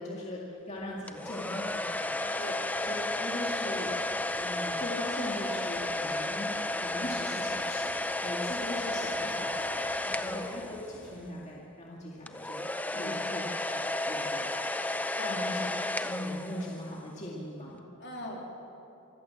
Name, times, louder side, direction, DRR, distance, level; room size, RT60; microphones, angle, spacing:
voice 1, 0.0-2.2 2.8-2.9 3.2-8.0 8.2-9.9 10.2-13.8 14.1-14.5 15.3-15.7 16.0-17.8, left 1 dB, 30° left, -4 dB, 2.1 m, -40 dB
sound 1, 0.8-11.3, equal, 10° right, 4.3 m, -55 dB
sound 2, 1.1-11.2 12.3-17.0, left 2 dB, 5° left, 0.5 m, -33 dB
voice 2, 10.0-10.3 12.9-13.2 15.2-15.5 18.0-18.4, left 2 dB, 50° left, -1 dB, 3.3 m, -41 dB
25.5 x 15.5 x 7.5 m, 2.8 s
head